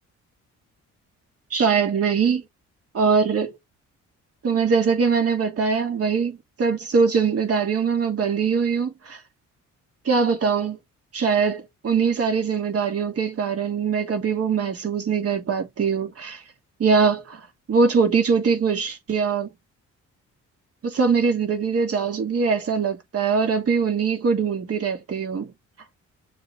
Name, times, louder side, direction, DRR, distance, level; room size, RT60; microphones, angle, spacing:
voice 1, 1.5-2.4 2.9-3.5 4.4-9.2 10.0-10.8 11.1-16.4 16.8-19.5 20.8-25.5, right 5 dB, 50° right, 2.8 m, -22 dB
6.6 x 3.9 x 3.9 m
cardioid pair, 90°, 30 cm